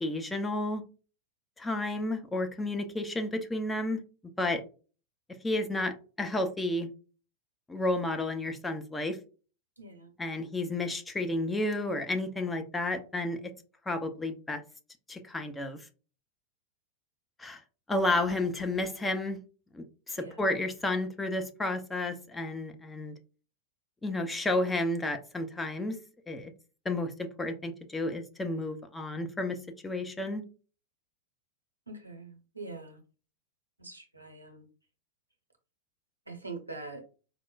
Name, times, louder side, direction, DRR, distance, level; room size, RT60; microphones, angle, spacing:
voice 1, 0.0-0.8 1.6-4.0 4.4-4.6 5.4-6.9 7.7-9.2 10.2-13.5 13.9-14.6 15.1-15.8 17.4-17.6 17.9-19.4 19.7-23.1 24.0-26.0 26.3-26.5 26.9-29.6 29.8-30.4, left 2 dB, 10° left, 6 dB, 0.5 m, -31 dB
voice 2, 9.8-10.1 20.1-20.4 31.9-33.0 33.8-34.7 36.3-37.0, right 3 dB, 85° right, 3 dB, 0.8 m, -44 dB
4.3 x 2.0 x 2.3 m, 0.35 s
figure-of-eight pair, 90°, 0 cm